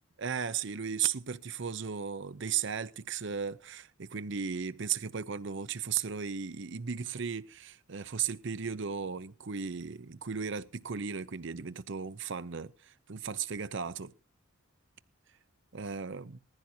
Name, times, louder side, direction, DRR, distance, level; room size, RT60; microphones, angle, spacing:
voice 1, 0.2-14.1 15.7-16.4, right 7 dB, 60° right, 0.7 m, -36 dB
19.5 x 15.0 x 2.8 m
head